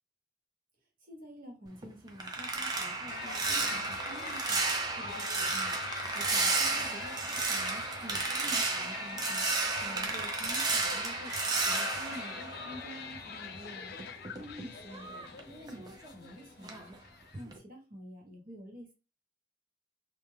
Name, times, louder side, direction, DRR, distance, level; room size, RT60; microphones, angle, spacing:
voice 1, 1.1-4.6 5.0-5.8 6.1-9.5 9.8-13.9 14.3-17.0 17.4-18.9, equal, 50° right, -1 dB, 1.0 m, -48 dB
sound 1, 1.7-13.3 13.6-16.3 16.6-17.0 17.3-17.6, right 3 dB, 25° right, 0.4 m, -33 dB
sound 2, 3.1-17.4, left 6 dB, 60° left, 0.4 m, -45 dB
2.2 x 2.1 x 3.2 m, 0.32 s
head